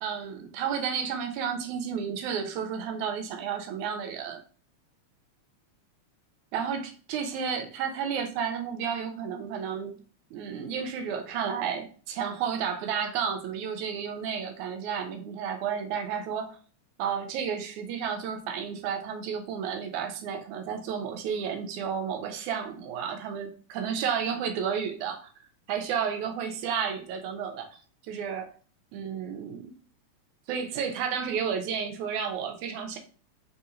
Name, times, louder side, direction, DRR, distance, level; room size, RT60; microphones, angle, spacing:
voice 1, 0.0-4.4 6.5-10.0 10.3-16.6 17.0-25.3 25.7-27.7 28.0-28.5 28.9-29.8 30.5-33.0, right 7 dB, 80° right, 2.0 m, -32 dB
4.7 x 2.8 x 2.5 m
omnidirectional pair, 3.4 m